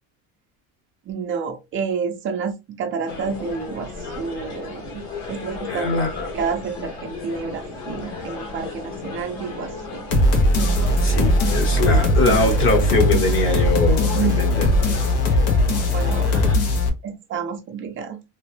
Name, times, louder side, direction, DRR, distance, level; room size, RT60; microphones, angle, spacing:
voice 1, 1.1-3.9 4.2-5.0 5.3-6.0 6.3-10.0 14.1-14.5 15.9-16.4 17.0-18.2, right 6 dB, 35° right, 0.5 m, -29 dB
sound 1, 3.1-16.6, left 2 dB, 55° left, 1.4 m, -33 dB
voice 2, 5.7-6.3 11.0-14.7, left 2 dB, 35° left, 1.0 m, -22 dB
sound 2, 10.1-16.9, left 1 dB, 80° left, 1.2 m, -19 dB
3.0 x 2.9 x 3.2 m
cardioid pair, 165°, 35 cm